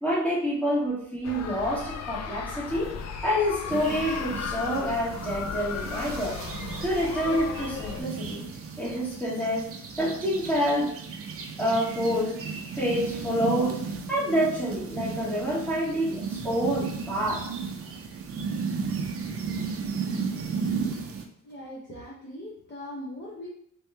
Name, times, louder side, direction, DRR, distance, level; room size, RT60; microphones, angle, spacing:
voice 1, 0.0-2.9 3.2-6.4 6.8-8.4 8.8-9.6 10.0-10.9 11.6-12.3 12.8-13.8 14.1-17.4, equal, 5° left, -7 dB, 1.3 m, -27 dB
sound 1, 1.2-8.0, left 6 dB, 55° left, 0.4 m, -36 dB
sound 2, 3.7-21.2, right 5 dB, 45° right, 0.5 m, -34 dB
voice 2, 21.4-23.5, left 1 dB, 35° left, -6 dB, 0.8 m, -40 dB
3.4 x 3.0 x 3.3 m, 0.65 s
wide cardioid pair, 170°, 31 cm